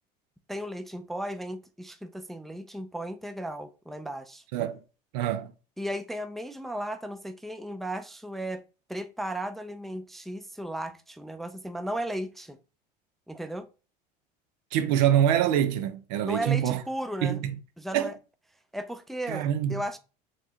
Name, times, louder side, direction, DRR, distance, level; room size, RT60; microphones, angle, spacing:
voice 1, 0.5-4.4 5.8-8.6 8.9-12.6 13.3-13.7 16.2-17.4 17.8-18.1 18.7-20.0, right 1 dB, ahead, 0.3 m, -35 dB
voice 2, 5.1-5.5 14.7-16.8 17.2-17.6 17.9-18.1 19.3-19.8, right 10 dB, 75° right, 0.5 m, -25 dB
4.5 x 3.0 x 2.7 m
hypercardioid pair, 85°, 21 cm